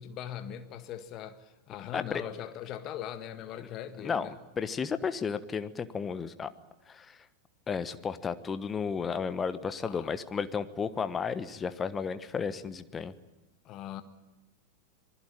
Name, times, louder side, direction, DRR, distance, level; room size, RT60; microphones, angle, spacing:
voice 1, 0.0-4.3 9.8-10.1 13.7-14.0, left 10 dB, 35° left, 1.7 m, -40 dB
voice 2, 4.0-4.3 4.6-6.5 6.9-7.2 7.7-13.1, left 6 dB, 20° left, 1.2 m, -33 dB
26.5 x 20.0 x 9.0 m
figure-of-eight pair, 90°, 0 cm